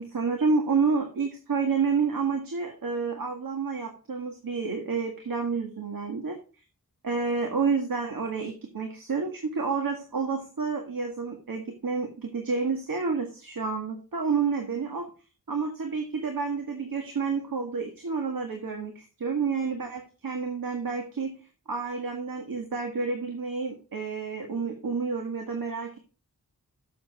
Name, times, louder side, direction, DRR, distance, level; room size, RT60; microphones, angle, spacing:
voice 1, 0.0-6.4 7.0-15.1 15.5-21.3 21.7-26.0, right 5 dB, 70° right, 3 dB, 1.8 m, -29 dB
7.3 x 7.3 x 5.4 m, 0.34 s
wide cardioid pair, 90°, 35 cm